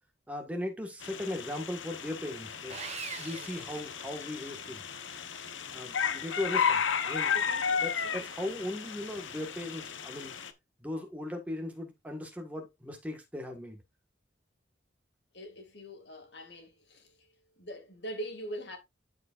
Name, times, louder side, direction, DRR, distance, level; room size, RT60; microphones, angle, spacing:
voice 1, 0.3-2.8 3.2-4.8 5.7-7.3 7.8-10.3 10.8-13.8, left 1 dB, 10° right, 1.7 m, -38 dB
sound 1, 1.0-10.5, left 7 dB, 80° left, 1.0 m, -34 dB
Sawing, 2.7-4.6, right 6 dB, 35° right, 1.0 m, -43 dB
voice 2, 7.3-8.3 15.3-18.8, right 1 dB, 60° left, 2.4 m, -43 dB
13.0 x 4.9 x 2.6 m
head